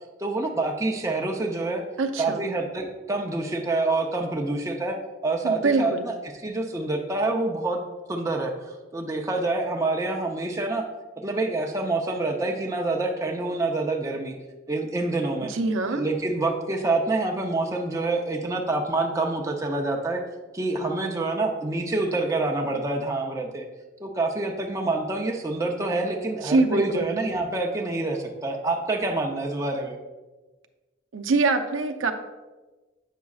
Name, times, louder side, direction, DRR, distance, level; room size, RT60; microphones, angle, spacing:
voice 1, 0.2-1.8 2.2-5.0 5.2-6.1 6.4-10.8 11.2-14.3 14.7-15.5 15.9-20.2 20.5-23.7 24.0-30.0, right 2 dB, 15° right, 1 dB, 0.5 m, -27 dB
voice 2, 2.0-2.5 5.4-6.1 15.4-16.1 26.4-27.2 31.1-32.1, right 3 dB, 85° right, 5 dB, 0.5 m, -24 dB
8.2 x 6.1 x 2.4 m, 1.2 s
head